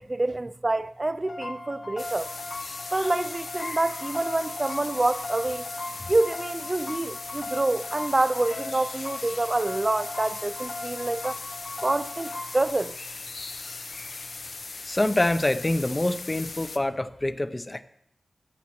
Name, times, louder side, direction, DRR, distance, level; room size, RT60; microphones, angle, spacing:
voice 1, 0.0-2.3 2.9-5.7 6.1-11.4 11.8-12.9, right 2 dB, 30° right, 0.3 m, -27 dB
sound 1, 1.2-12.7, left 2 dB, 50° left, 1.0 m, -38 dB
sound 2, 2.0-16.8, left 3 dB, 65° left, 0.7 m, -39 dB
voice 2, 14.9-17.8, left 1 dB, 25° left, 0.5 m, -26 dB
14.5 x 9.3 x 3.0 m
wide cardioid pair, 70°, 0 cm